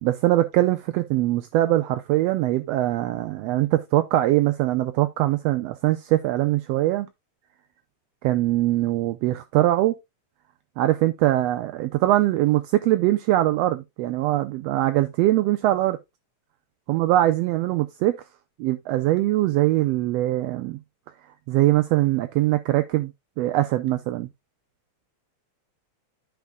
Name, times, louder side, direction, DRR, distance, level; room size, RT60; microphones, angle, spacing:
voice 1, 0.0-7.1 8.2-9.9 10.8-16.0 16.9-18.1 18.6-20.8 21.5-23.1 23.4-24.3, right 15 dB, 80° right, 1.5 m, -22 dB
13.0 x 4.5 x 2.3 m
omnidirectional pair, 3.3 m